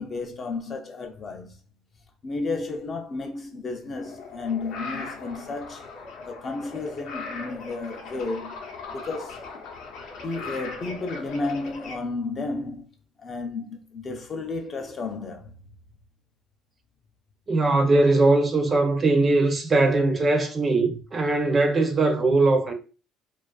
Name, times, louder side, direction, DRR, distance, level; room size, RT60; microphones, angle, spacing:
voice 1, 0.0-1.5 2.2-5.9 6.2-8.6 8.9-9.5 10.2-12.9 13.2-15.5, left 3 dB, 30° left, 0.4 m, -32 dB
sound 1, 4.0-12.0, left 4 dB, 70° left, 0.6 m, -39 dB
voice 2, 17.5-22.7, right 2 dB, 25° right, 0.4 m, -20 dB
2.4 x 2.3 x 2.2 m
cardioid pair, 130°, 0 cm